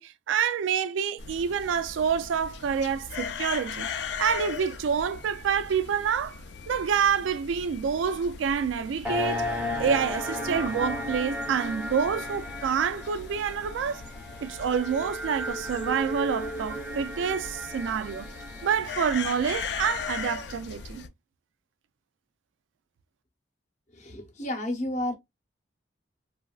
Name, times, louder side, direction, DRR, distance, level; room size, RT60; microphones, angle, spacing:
voice 1, 0.0-3.9 4.2-6.4 6.7-9.4 9.8-14.0 14.4-18.3 18.6-21.0, right 7 dB, 80° right, 0.3 m, -27 dB
sound 1, 1.2-21.1, left 6 dB, 65° left, 0.4 m, -39 dB
sound 2, 9.0-20.5, left 1 dB, 5° right, 0.6 m, -35 dB
voice 2, 23.9-25.1, left 1 dB, 40° left, 0.7 m, -31 dB
3.1 x 2.4 x 2.2 m
head